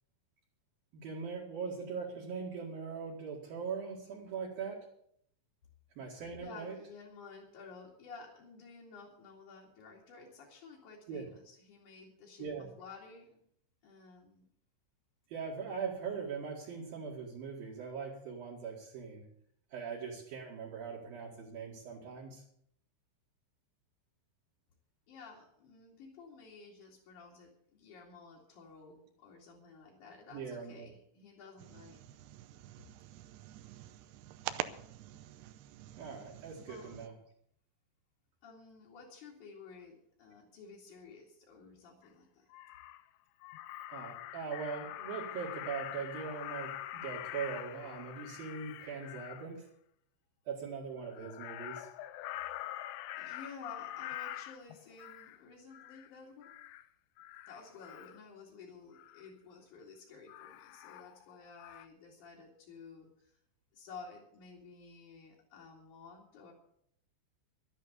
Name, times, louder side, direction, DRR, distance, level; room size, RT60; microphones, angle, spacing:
voice 1, 0.9-4.9 6.0-6.8 11.1-11.3 12.4-12.7 15.3-19.2 19.7-22.4 30.3-30.9 36.0-37.2 43.9-49.7 50.5-51.9, right 6 dB, 60° right, -3 dB, 3.4 m, -41 dB
voice 2, 6.4-13.4 13.8-14.5 25.1-32.1 36.6-37.0 38.4-42.5 53.1-56.5 57.5-63.4 63.7-66.5, left 4 dB, 50° left, -4 dB, 3.3 m, -53 dB
sound 1, 31.6-37.1, right 13 dB, 80° right, 2.4 m, -46 dB
Crow, 42.0-42.1 42.5-43.0 43.4-49.5 51.0-55.4 55.7-56.1 56.4-56.8 57.2-58.2 59.0-59.3 60.3-61.3 61.6-61.9, left 14 dB, 80° left, 2.4 m, -45 dB
12.5 x 11.0 x 6.9 m, 0.68 s
omnidirectional pair, 5.3 m